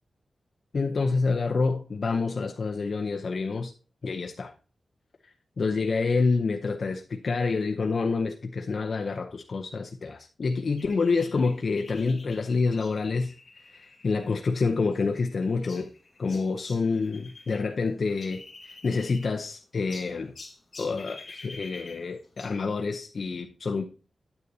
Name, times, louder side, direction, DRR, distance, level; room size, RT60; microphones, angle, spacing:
voice 1, 0.7-3.7 4.0-4.5 5.6-13.3 13.7-15.9 16.2-20.3 20.8-23.9, left 4 dB, 50° left, 0.6 m, -27 dB
sound 1, 10.8-17.6 17.9-19.5 19.9-22.6, left 3 dB, 35° left, 1.9 m, -48 dB
9.6 x 7.8 x 2.7 m
wide cardioid pair, 170°, 0 cm